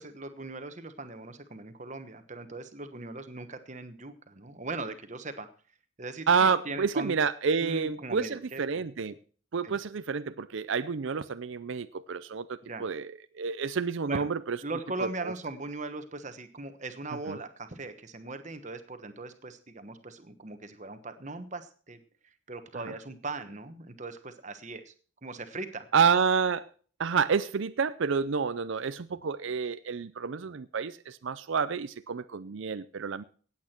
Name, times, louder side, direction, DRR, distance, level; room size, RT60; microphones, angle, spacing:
voice 1, 0.0-5.5 6.0-7.1 7.6-8.6 9.0-9.2 9.6-9.8 12.6-12.9 14.1-14.3 14.6-22.0 22.5-24.9 25.2-25.9, right 2 dB, 35° right, 1.2 m, -39 dB
voice 2, 6.3-9.1 9.5-14.6 15.0-15.3 17.3-17.4 22.8-22.9 25.9-26.7 27.0-33.2, right 5 dB, 60° right, 0.5 m, -29 dB
17.0 x 8.6 x 4.4 m
head